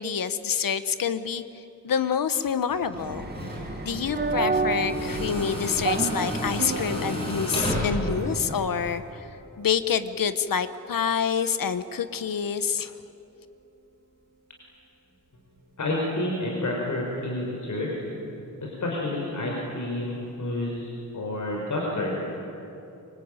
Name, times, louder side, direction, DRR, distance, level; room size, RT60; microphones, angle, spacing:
voice 1, 0.0-3.3 3.8-9.3 9.6-12.9, left 7 dB, 80° left, 12 dB, 1.3 m, -27 dB
Tools, 2.7-9.0, left 1 dB, 15° left, 7.2 m, -33 dB
sound 1, 3.0-8.6, right 3 dB, 30° right, 2.3 m, -30 dB
Piano, 6.6-21.6, right 4 dB, 50° right, 4.0 m, -46 dB
voice 2, 15.8-17.9 18.6-22.2, left 1 dB, 60° left, -2 dB, 5.0 m, -29 dB
26.0 x 25.0 x 9.1 m, 2.8 s
wide cardioid pair, 175°, 33 cm